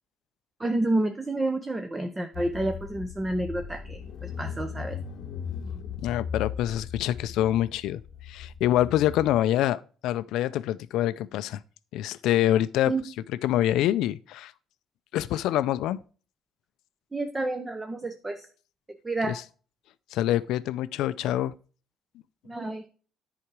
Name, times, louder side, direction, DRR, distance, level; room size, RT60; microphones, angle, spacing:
voice 1, 0.6-5.0 12.9-13.0 17.1-18.5 19.0-19.4 22.4-22.8, right 2 dB, 15° right, 0.7 m, -29 dB
Car / Engine, 2.3-9.4, left 7 dB, 55° left, 0.9 m, -38 dB
voice 2, 6.0-8.0 8.3-11.6 11.9-12.9 13.4-14.5 15.1-16.0 19.3-19.4 20.1-21.5, left 13 dB, 75° left, 0.4 m, -25 dB
10.0 x 4.9 x 4.6 m
cardioid pair, 125°, 0 cm